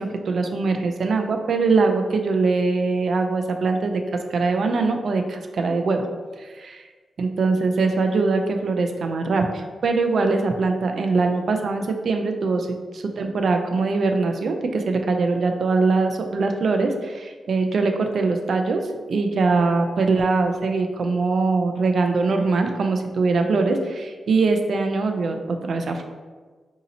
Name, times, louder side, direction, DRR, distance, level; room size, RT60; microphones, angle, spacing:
voice 1, 0.0-4.0 4.3-6.1 6.4-6.8 7.2-18.8 19.1-26.0, right 3 dB, 65° right, 5 dB, 0.3 m, -22 dB
2.7 x 2.6 x 4.0 m, 1.4 s
wide cardioid pair, 135°, 0 cm